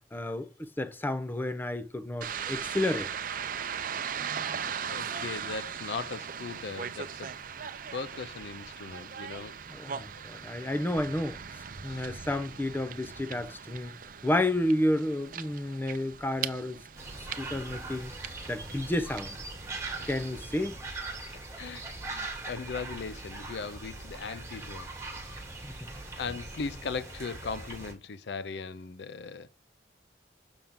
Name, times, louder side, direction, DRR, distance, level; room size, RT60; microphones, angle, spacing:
voice 1, 0.1-3.1 3.9-4.0 9.7-14.0 14.2-16.8 17.2-18.1 18.5-19.4 20.1-20.8 25.6-25.9, left 1 dB, 10° left, 0.6 m, -31 dB
sound 1, 2.2-20.8, right 7 dB, 50° right, 0.6 m, -39 dB
voice 2, 4.9-7.3 7.9-9.6 10.1-10.2 10.6-10.7 11.8-12.0 14.0-14.1 21.3-24.9 25.9-29.5, left 5 dB, 65° left, 0.5 m, -39 dB
sound 2, 17.0-27.9, right 2 dB, 15° right, 2.3 m, -41 dB
7.0 x 5.7 x 3.6 m
head